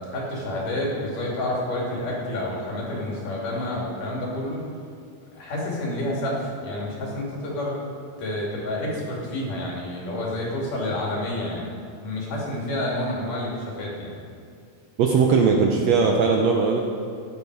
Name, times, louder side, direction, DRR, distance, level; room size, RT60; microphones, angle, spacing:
voice 1, 0.1-4.6 5.3-7.8 8.2-11.7 12.0-14.2, left 1 dB, 65° left, -4 dB, 4.0 m, -29 dB
voice 2, 15.0-16.8, right 5 dB, 85° right, 1 dB, 1.5 m, -19 dB
15.0 x 11.0 x 4.8 m, 2.3 s
omnidirectional pair, 4.1 m